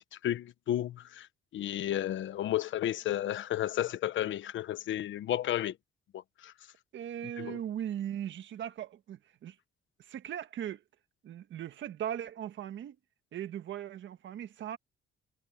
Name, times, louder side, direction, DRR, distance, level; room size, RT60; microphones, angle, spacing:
voice 1, 0.2-1.3 1.5-5.7 6.1-6.5 7.4-7.6, left 12 dB, 75° left, 1.2 m, -32 dB
voice 2, 6.9-9.6 10.0-10.8 11.2-13.0 13.3-14.8, right 10 dB, 70° right, 1.6 m, -38 dB
cardioid pair, 90°, 20 cm